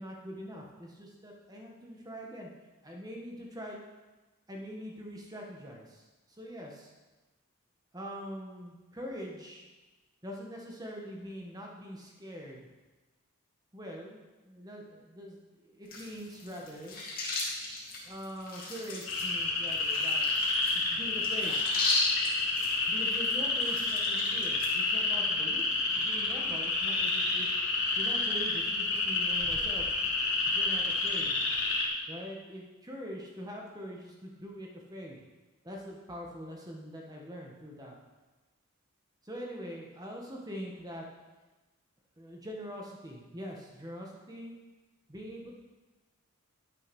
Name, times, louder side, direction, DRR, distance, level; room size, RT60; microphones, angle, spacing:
voice 1, 0.0-2.5 2.8-3.8 4.5-6.9 7.9-9.7 10.2-12.7 13.7-17.0 18.0-20.2 20.7-21.6 22.9-27.5 28.0-29.9 30.5-31.4 32.1-35.2 35.6-37.9 39.2-41.1 42.2-44.5 45.1-45.5, equal, 15° right, -1 dB, 1.5 m, -43 dB
sound 1, 15.9-24.7, left 2 dB, 40° left, 2.3 m, -36 dB
sound 2, 19.1-31.8, left 3 dB, 65° left, 2.1 m, -29 dB
11.0 x 6.9 x 5.4 m, 1.2 s
head